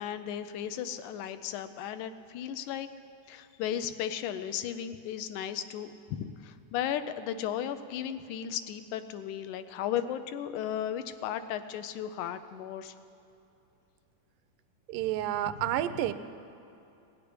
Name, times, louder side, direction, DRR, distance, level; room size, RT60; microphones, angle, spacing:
voice 1, 0.0-2.9 3.3-12.9, left 10 dB, 80° left, 10 dB, 2.0 m, -35 dB
voice 2, 14.9-16.1, right 13 dB, 90° right, 12 dB, 2.2 m, -30 dB
17.5 x 6.8 x 9.5 m, 2.7 s
omnidirectional pair, 3.7 m